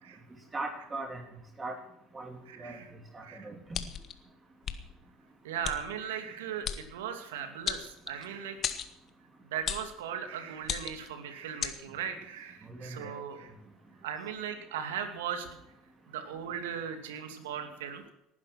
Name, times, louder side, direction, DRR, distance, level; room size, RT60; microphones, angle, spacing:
voice 1, 0.5-1.2 1.6-1.8 2.1-2.8 3.1-3.8 12.6-13.2, right 2 dB, 25° right, 4 dB, 3.2 m, -39 dB
voice 2, 2.5-2.9 3.2-3.5 5.4-8.6 9.5-13.5 14.0-15.5 16.1-18.1, right 8 dB, 85° right, 7 dB, 2.6 m, -38 dB
sound 1, 3.7-4.1 4.6-4.8 5.6-5.8 6.6-6.8 7.7-8.3 8.6-8.9 9.7-9.9 10.6-11.1 11.6-11.8, left 8 dB, 45° left, 1.8 m, -34 dB
19.0 x 11.0 x 6.0 m, 0.84 s
hypercardioid pair, 75°, 0 cm